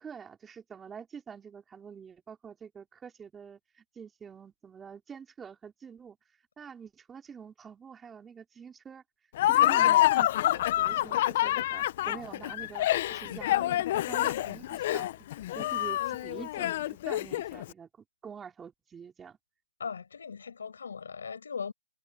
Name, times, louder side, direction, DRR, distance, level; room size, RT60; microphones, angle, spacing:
voice 1, 0.0-6.2 6.6-9.0 9.5-15.2 15.5-17.9 18.2-19.4, right 7 dB, 10° right, 4.2 m, -46 dB
Laughter, 9.4-17.6, left 14 dB, 40° left, 0.8 m, -27 dB
voice 2, 19.8-21.7, left 6 dB, 80° left, 5.8 m, -39 dB
hypercardioid pair, 150°, 0 cm